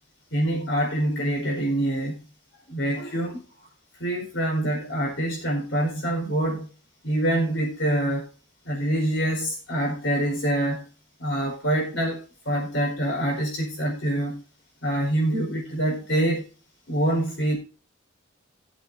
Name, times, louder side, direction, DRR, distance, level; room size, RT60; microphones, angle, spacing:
voice 1, 0.3-2.2 2.7-3.4 4.0-6.7 7.0-8.3 8.6-10.8 11.2-12.2 12.4-14.4 14.8-16.4 16.9-17.6, right 1 dB, 70° left, 0 dB, 4.6 m, -25 dB
19.5 x 7.7 x 2.6 m, 0.36 s
head